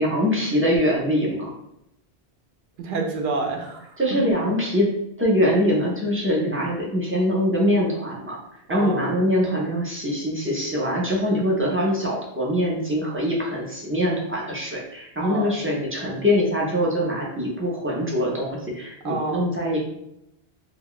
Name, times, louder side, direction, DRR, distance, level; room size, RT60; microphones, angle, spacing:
voice 1, 0.0-1.5 4.0-4.9 5.2-8.4 8.7-19.8, equal, 20° right, -4 dB, 0.3 m, -23 dB
voice 2, 2.8-4.0 8.7-9.0 15.2-15.5 19.0-19.5, right 3 dB, 60° right, 1 dB, 0.7 m, -28 dB
2.3 x 2.2 x 3.6 m, 0.80 s
omnidirectional pair, 1.1 m